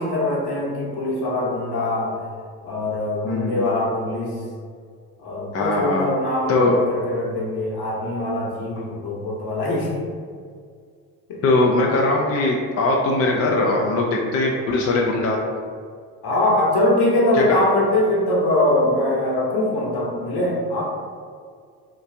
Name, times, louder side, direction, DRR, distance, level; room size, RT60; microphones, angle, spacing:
voice 1, 0.0-2.2 2.6-4.4 5.2-10.0 11.3-11.4 16.2-20.8, left 1 dB, 50° left, -3 dB, 1.1 m, -22 dB
voice 2, 3.2-3.6 5.5-6.1 6.5-6.8 11.4-15.4 17.4-17.6, left 2 dB, 35° left, -1 dB, 0.4 m, -20 dB
2.9 x 2.4 x 3.3 m, 2.1 s
hypercardioid pair, 60°, 49 cm